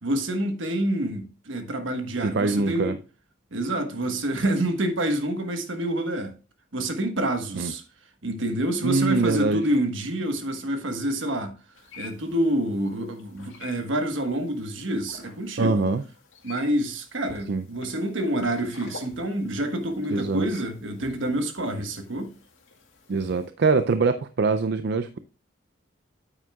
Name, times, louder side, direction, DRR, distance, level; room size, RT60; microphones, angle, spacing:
voice 1, 0.0-3.0 3.5-6.3 6.7-7.8 8.2-11.5 12.0-15.9 16.4-22.3, right 1 dB, 70° right, 1.3 m, -27 dB
voice 2, 2.2-2.9 7.6-7.7 8.8-9.7 15.6-16.0 17.5-17.6 20.1-20.5 23.1-25.2, right 4 dB, 55° right, 0.4 m, -23 dB
sound 1, 11.7-23.5, left 4 dB, 80° left, 2.2 m, -49 dB
9.0 x 8.8 x 2.3 m
head